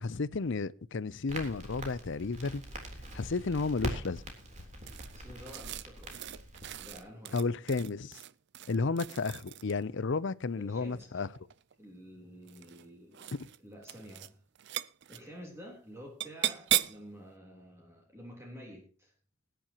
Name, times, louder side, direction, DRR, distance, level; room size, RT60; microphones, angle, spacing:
voice 1, 0.0-2.6 3.1-4.2 7.3-8.2 8.7-11.3, left 4 dB, 55° left, 0.6 m, -32 dB
Crackle, 1.3-7.0, right 1 dB, 30° right, 3.5 m, -43 dB
sound 1, 4.9-9.9 11.1-11.7 12.4-12.9 13.1-13.6 13.8-14.3 14.6-15.2 16.2-17.1, right 12 dB, 50° right, 0.5 m, -37 dB
voice 2, 5.1-6.3 6.8-7.4 10.6-11.3 11.8-14.4 15.1-19.1, equal, 10° right, 3.4 m, -50 dB
20.0 x 10.5 x 2.9 m
head